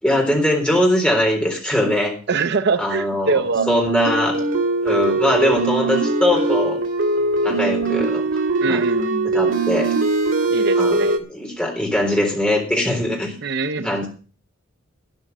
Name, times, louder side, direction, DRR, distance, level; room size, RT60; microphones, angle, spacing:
voice 1, 0.0-2.2 2.8-3.4 3.7-4.4 4.8-6.8 7.4-8.3 8.6-8.8 9.2-9.9 10.8-11.0 11.3-13.3 13.8-14.1, left 1 dB, 5° left, 0 dB, 3.8 m, -21 dB
voice 2, 2.3-3.7 8.6-9.3 10.5-11.2 13.4-14.0, right 4 dB, 55° right, 11 dB, 0.7 m, -23 dB
sound 1, 3.5-11.2, right 3 dB, 80° right, 1.9 m, -21 dB
12.5 x 10.5 x 5.5 m, 0.38 s
head